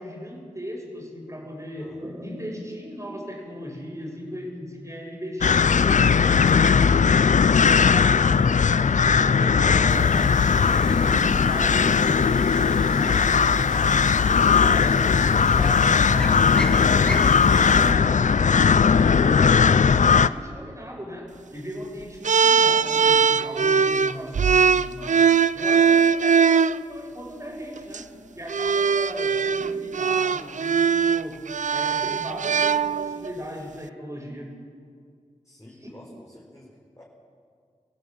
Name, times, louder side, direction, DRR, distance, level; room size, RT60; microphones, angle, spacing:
voice 1, 0.0-7.2 7.6-10.2 10.5-14.0 14.3-18.3 18.9-25.3 25.5-28.1 28.4-31.4 31.7-34.6 35.8-35.9, equal, 25° right, 1 dB, 6.9 m, -37 dB
voice 2, 1.8-2.2 35.4-37.0, left 1 dB, 25° left, -4 dB, 4.8 m, -48 dB
sound 1, 5.4-20.3, left 6 dB, 70° left, 0.5 m, -18 dB
sound 2, 9.9-17.9, left 1 dB, 5° left, 2.7 m, -33 dB
sound 3, 22.2-26.8 27.8-28.0 28.5-33.3, right 6 dB, 70° right, 0.5 m, -20 dB
26.5 x 16.0 x 8.9 m, 2.1 s
cardioid pair, 50°, 13 cm